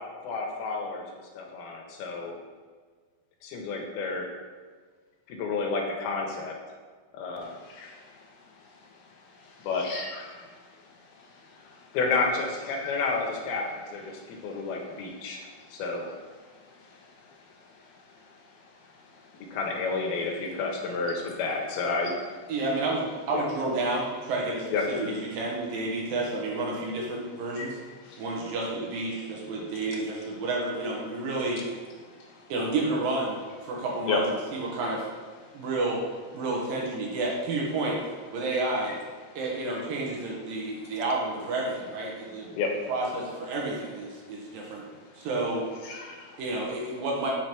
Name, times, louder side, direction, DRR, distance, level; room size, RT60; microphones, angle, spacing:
voice 1, 0.2-1.0 1.3-2.3 3.4-4.3 5.3-6.5 7.1-7.5 9.6-9.9 11.9-15.4 15.7-16.1 19.5-22.4 23.3-23.4 24.7-24.8 34.1-34.2 42.6-42.7, left 4 dB, 90° left, 1 dB, 2.9 m, -30 dB
voice 2, 7.4-8.0 9.8-10.5 12.8-12.9 27.6-27.7 28.0-28.2 45.9-46.4, left 3 dB, 70° left, -2 dB, 2.3 m, -41 dB
voice 3, 22.5-27.8 28.2-31.6 32.5-34.2 34.5-35.0 35.5-36.0 36.3-38.0 38.3-38.9 39.4-42.5 42.9-44.8 45.2-45.6 46.4-47.3, right 2 dB, 75° right, -2 dB, 2.8 m, -30 dB
7.0 x 4.5 x 4.6 m, 1.5 s
omnidirectional pair, 4.3 m